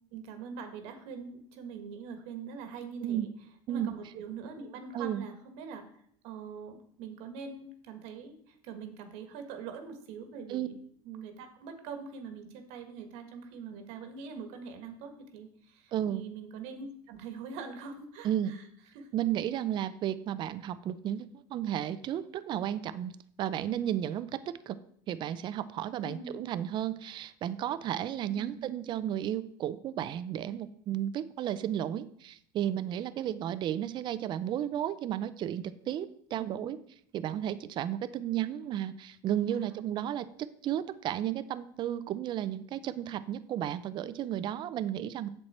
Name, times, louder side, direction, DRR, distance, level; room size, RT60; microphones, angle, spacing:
voice 1, 0.1-3.3 3.7-5.9 6.2-10.7 11.0-18.7 18.9-19.1 26.0-26.4 28.3-28.8 36.4-36.7 39.5-39.7, right 5 dB, 70° right, 7 dB, 1.5 m, -43 dB
voice 2, 15.9-16.2 18.2-18.6 19.1-24.4 24.7-24.8 25.1-36.8 37.1-45.3, right 11 dB, 45° right, 15 dB, 0.5 m, -33 dB
7.8 x 7.5 x 4.3 m, 0.66 s
supercardioid pair, 115°, 11 cm